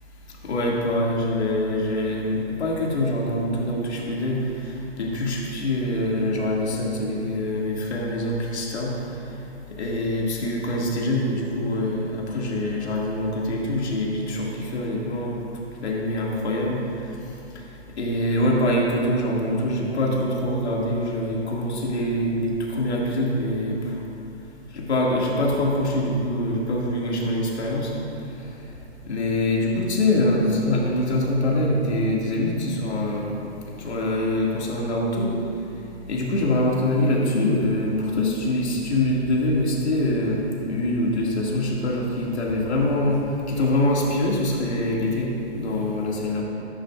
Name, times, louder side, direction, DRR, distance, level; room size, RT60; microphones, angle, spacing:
voice 1, 0.4-8.9 9.8-15.4 15.8-16.8 18.0-24.0 24.7-27.9 29.1-33.3 33.8-35.3 36.1-46.4, left 1 dB, 80° left, -3 dB, 2.2 m, -24 dB
13.5 x 10.5 x 2.5 m, 2.8 s
hypercardioid pair, 145°, 33 cm